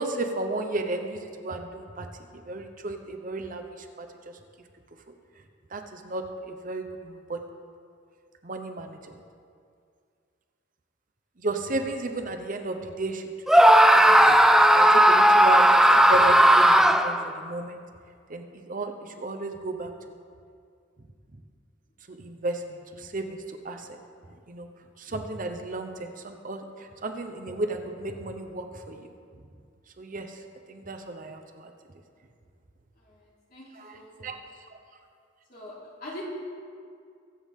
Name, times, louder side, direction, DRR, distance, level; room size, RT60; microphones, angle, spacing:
voice 1, 0.0-2.1 2.3-4.1 5.1-5.2 5.7-7.4 8.4-9.2 11.4-13.3 13.9-17.8 18.3-19.9 22.1-24.0 24.5-24.7 25.0-29.1 30.0-30.4 30.7-31.7 33.7-34.3, right 2 dB, 45° right, 5 dB, 0.8 m, -33 dB
Screaming, 13.5-17.3, right 1 dB, ahead, 0.3 m, -16 dB
voice 2, 33.0-34.3 35.5-36.2, left 2 dB, 50° left, -5 dB, 3.2 m, -44 dB
22.0 x 8.1 x 3.7 m, 2.3 s
head